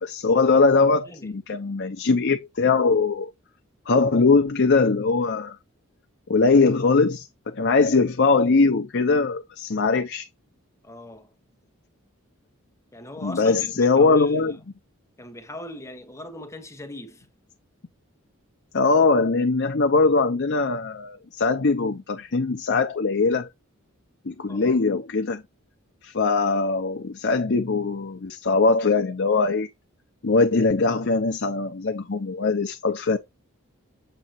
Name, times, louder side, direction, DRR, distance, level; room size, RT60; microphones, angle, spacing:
voice 1, 0.0-3.3 3.9-5.6 6.3-10.3 13.2-14.6 18.7-23.5 24.2-25.4 26.0-29.7 30.2-33.2, left 4 dB, 55° left, 0.8 m, -21 dB
voice 2, 10.8-11.3 12.9-14.6 15.2-17.3 24.5-24.8, left 1 dB, 15° left, 1.3 m, -40 dB
7.8 x 2.9 x 4.3 m
head